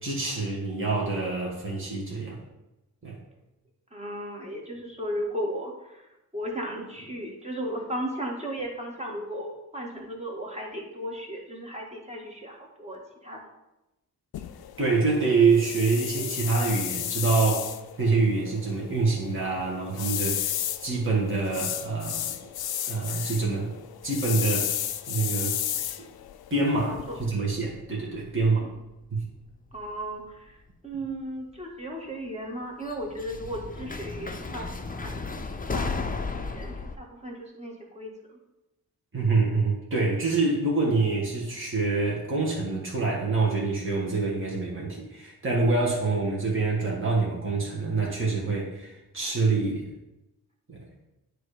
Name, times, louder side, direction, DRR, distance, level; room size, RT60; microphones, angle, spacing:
voice 1, 0.0-2.4 3.0-3.2 14.8-17.7 18.0-20.5 20.8-22.4 22.9-23.7 24.0-25.6 26.5-28.6 29.1-29.2 39.1-49.9 50.7-50.9, right 3 dB, 35° right, -3 dB, 1.9 m, -26 dB
voice 2, 3.9-13.4 26.8-27.3 28.4-28.7 29.7-30.6 30.8-35.3 35.6-35.9 36.3-38.4, equal, 15° right, -1 dB, 1.9 m, -36 dB
sound 1, 14.3-27.3, left 11 dB, 80° left, 0.5 m, -33 dB
sound 2, 27.1-29.1 29.3-30.0 31.1-31.2 32.9-37.0, left 4 dB, 25° left, 0.6 m, -34 dB
9.3 x 3.3 x 5.1 m, 0.96 s
cardioid pair, 70°, 37 cm